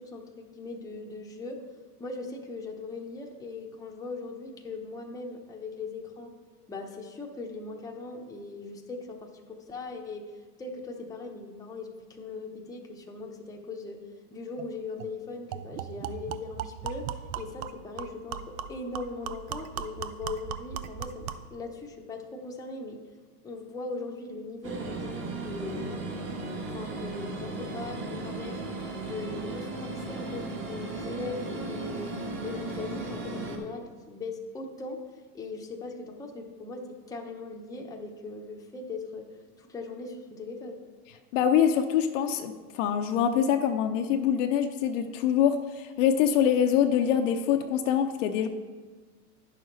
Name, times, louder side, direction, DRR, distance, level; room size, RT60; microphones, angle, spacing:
voice 1, 0.0-1.6 2.0-6.3 6.7-10.2 10.6-14.0 14.3-23.0 23.4-28.6 29.0-35.0 35.3-39.3 39.6-40.8, left 3 dB, 10° left, 0 dB, 0.8 m, -39 dB
sound 1, 14.6-14.7 15.0-15.1 15.5-21.5, right 9 dB, 65° right, 0.6 m, -38 dB
sound 2, 24.6-33.6, right 2 dB, 25° right, 1.4 m, -36 dB
voice 2, 41.3-48.5, left 9 dB, 55° left, 6 dB, 0.7 m, -24 dB
9.9 x 6.5 x 3.9 m, 1.4 s
hypercardioid pair, 125°, 46 cm